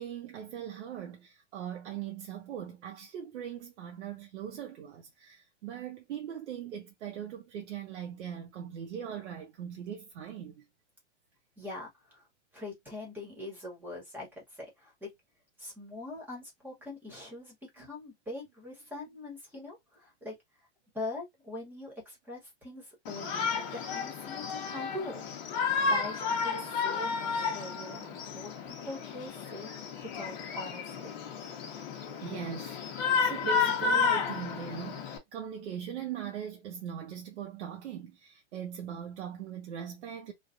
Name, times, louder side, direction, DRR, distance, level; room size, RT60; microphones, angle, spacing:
voice 1, 0.0-10.6 17.8-17.9 32.2-32.8 33.2-40.3, right 8 dB, 70° right, 0.9 m, -40 dB
voice 2, 11.6-12.3 12.5-15.1 15.6-20.3 20.9-25.3 25.8-29.7 30.0-31.1, left 2 dB, 5° right, 1.1 m, -42 dB
Shout, 23.1-35.2, left 5 dB, 40° left, 0.9 m, -32 dB
3.2 x 2.3 x 2.5 m
supercardioid pair, 160°, 36 cm